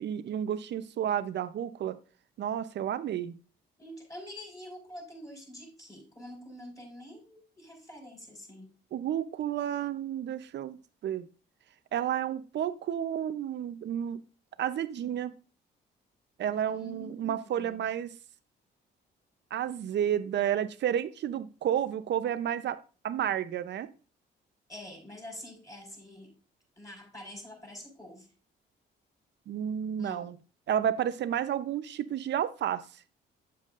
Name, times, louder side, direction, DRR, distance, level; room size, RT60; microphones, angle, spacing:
voice 1, 0.0-2.0 2.4-3.4 8.9-11.3 11.9-14.2 14.6-15.3 16.4-18.1 19.5-22.8 23.0-23.9 29.5-30.4 30.7-32.8, right 10 dB, 60° right, 12 dB, 0.7 m, -31 dB
voice 2, 3.8-8.7 16.7-17.8 24.7-26.3 26.8-28.3 30.0-30.3, left 1 dB, 15° left, -1 dB, 4.6 m, -46 dB
8.2 x 7.6 x 2.5 m, 0.35 s
cardioid pair, 90°, 20 cm